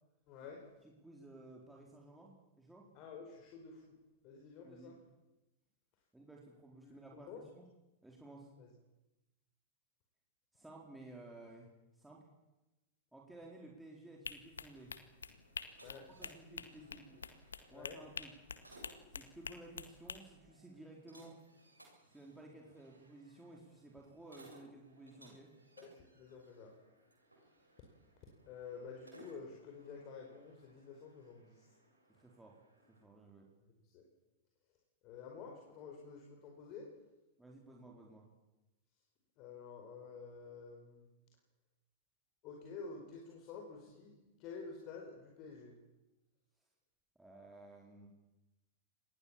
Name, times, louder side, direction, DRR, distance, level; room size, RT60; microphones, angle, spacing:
voice 1, 0.3-0.7 2.9-4.0 4.2-5.0 6.8-7.5 8.6-8.7 15.8-17.2 17.7-18.0 25.8-26.8 28.5-31.8 33.8-34.0 35.0-36.9 39.4-41.1 42.4-45.8, left 5 dB, 40° left, 1 dB, 4.9 m, -50 dB
voice 2, 1.0-2.9 4.6-5.0 6.1-7.6 8.0-8.5 10.5-12.2 13.1-14.9 15.9-17.1 17.7-18.3 19.1-21.4 22.0-25.5 32.1-32.6 32.9-33.5 37.4-38.3 47.2-48.1, right 2 dB, 5° right, -2 dB, 4.2 m, -55 dB
sound 1, 14.2-20.2, left 6 dB, 70° left, 1.9 m, -47 dB
sound 2, 14.5-33.0, right 1 dB, 85° right, 7.7 m, -64 dB
26.5 x 20.0 x 7.4 m, 1.0 s
figure-of-eight pair, 90°, 0 cm